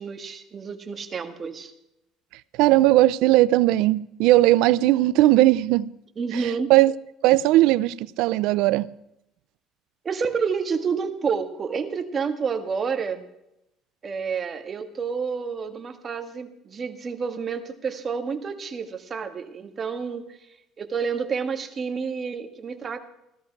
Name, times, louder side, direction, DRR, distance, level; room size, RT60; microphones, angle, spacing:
voice 1, 0.0-1.7 6.2-6.7 10.0-13.2 14.0-20.3 20.8-23.0, right 5 dB, 30° right, 1.7 m, -29 dB
voice 2, 2.6-5.9 6.3-6.9 7.2-8.9, right 16 dB, 75° right, 0.5 m, -18 dB
16.5 x 13.0 x 4.6 m
cardioid pair, 125°, 0 cm